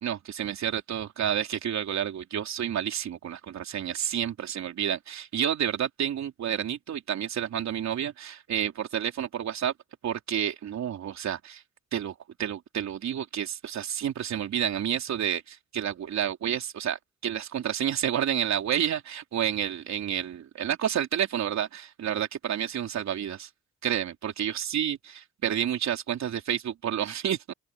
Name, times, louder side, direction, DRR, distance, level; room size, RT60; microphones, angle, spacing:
voice 1, 0.0-9.7 10.0-11.6 11.9-23.5 23.8-27.5, right 9 dB, 65° right, 3.7 m, -30 dB
open air
cardioid pair, 90°, 30 cm